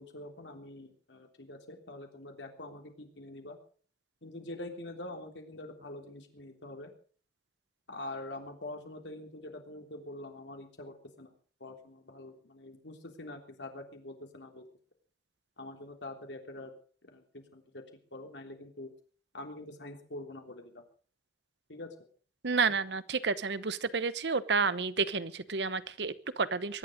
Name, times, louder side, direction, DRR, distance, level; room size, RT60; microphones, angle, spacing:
voice 1, 0.0-3.6 4.2-6.9 7.9-11.3 11.6-14.6 15.6-16.7 17.0-17.8 18.1-18.9 19.3-20.8 21.7-21.9, left 1 dB, 90° left, 4 dB, 3.4 m, -45 dB
voice 2, 22.4-26.8, right 4 dB, 75° right, 15 dB, 1.0 m, -30 dB
22.5 x 11.0 x 5.2 m, 0.43 s
head